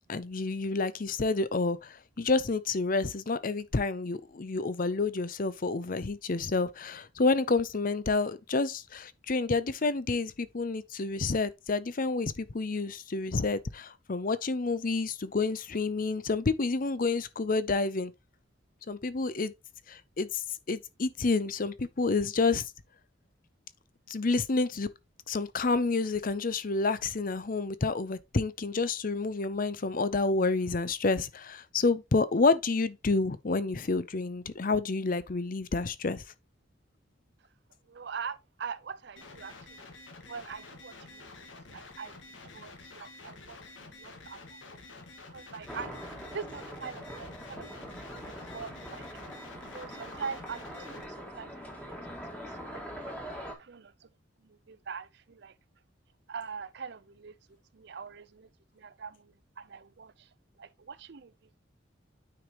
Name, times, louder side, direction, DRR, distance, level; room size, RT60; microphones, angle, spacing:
voice 1, 0.1-18.1 18.9-19.5 19.9-22.7 24.1-24.9 25.3-36.2, left 3 dB, 45° left, 0.6 m, -29 dB
voice 2, 37.8-39.9 40.2-41.3 41.7-45.0 45.3-49.1 49.7-52.0 52.3-53.3 53.6-54.1 54.4-55.6 56.3-57.4 57.7-61.3, right 6 dB, 60° right, 0.6 m, -43 dB
sound 1, 39.2-51.0, left 3 dB, 80° left, 1.6 m, -49 dB
sound 2, 45.7-53.5, equal, 5° left, 1.7 m, -43 dB
9.3 x 5.0 x 3.0 m
head